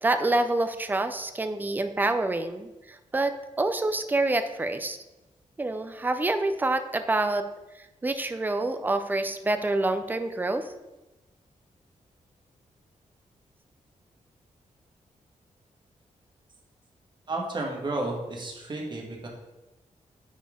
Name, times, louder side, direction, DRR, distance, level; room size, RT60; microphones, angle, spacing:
voice 1, 0.0-5.0 5.6-7.5 7.8-10.7, right 2 dB, 15° right, 9 dB, 0.4 m, -27 dB
voice 2, 17.3-19.3, right 2 dB, 35° right, 0 dB, 1.4 m, -32 dB
9.7 x 4.3 x 3.6 m, 1.0 s
wide cardioid pair, 175°, 13 cm